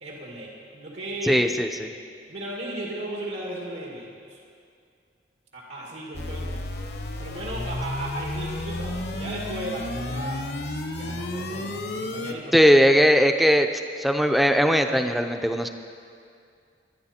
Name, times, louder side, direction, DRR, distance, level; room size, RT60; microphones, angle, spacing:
voice 1, 0.0-1.5 2.3-4.4 5.5-6.6 7.2-10.5 10.9-12.7, right 1 dB, 80° right, -3 dB, 2.2 m, -35 dB
voice 2, 1.2-1.7 12.5-13.7 14.0-15.7, equal, ahead, 6 dB, 0.5 m, -19 dB
sound 1, 6.1-12.3, left 1 dB, 60° left, 1.0 m, -32 dB
20.5 x 11.5 x 4.3 m, 2.4 s
head